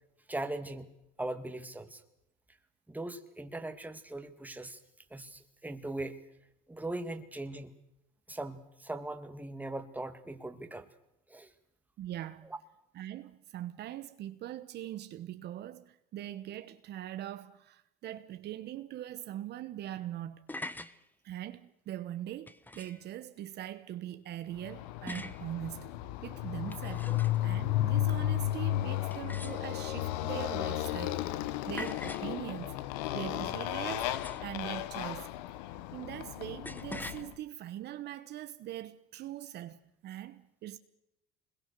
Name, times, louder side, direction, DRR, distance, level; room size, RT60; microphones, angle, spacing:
voice 1, 0.3-0.9 1.2-2.0 2.9-4.8 5.1-6.2 6.7-7.7 8.3-10.9 11.3-11.5 12.4-12.6 27.1-27.2, right 2 dB, 10° right, 2.1 m, -40 dB
voice 2, 12.0-12.5 12.9-20.5 21.2-25.9 26.2-27.1 27.4-31.2 31.7-32.8 33.1-35.3 35.6-40.8, right 12 dB, 55° right, 1.1 m, -42 dB
sound 1, 20.3-21.0 22.5-23.1 25.1-25.5 26.5-27.5 29.1-29.9 31.8-32.3 34.0-34.6 36.6-37.2, left 2 dB, 10° left, 1.1 m, -43 dB
Motorcycle, 24.6-37.3, left 14 dB, 90° left, 1.0 m, -34 dB
26.5 x 21.5 x 6.8 m
supercardioid pair, 95°, 20 cm